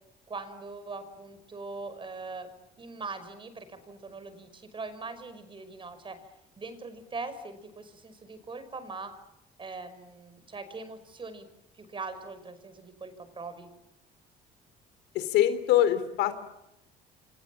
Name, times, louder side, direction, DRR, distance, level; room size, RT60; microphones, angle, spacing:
voice 1, 0.3-2.5 2.8-6.2 6.6-9.1 9.6-11.5 11.7-13.7, right 3 dB, 30° right, 11 dB, 5.6 m, -41 dB
voice 2, 15.2-16.3, left 12 dB, 90° left, 11 dB, 3.5 m, -24 dB
28.5 x 26.0 x 7.4 m, 0.86 s
cardioid pair, 110°, 17 cm